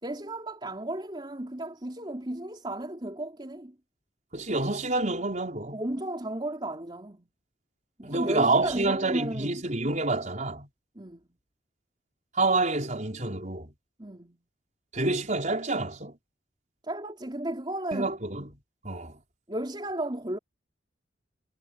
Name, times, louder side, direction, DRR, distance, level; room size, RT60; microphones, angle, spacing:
voice 1, 0.0-3.8 5.7-7.3 8.0-9.6 11.0-11.2 14.0-14.4 16.8-18.1 19.5-20.4, right 1 dB, 25° right, 3.9 m, -34 dB
voice 2, 4.3-5.8 8.0-10.7 12.3-13.7 14.9-16.2 17.9-18.5 18.8-19.2, right 2 dB, 40° right, 5.4 m, -28 dB
head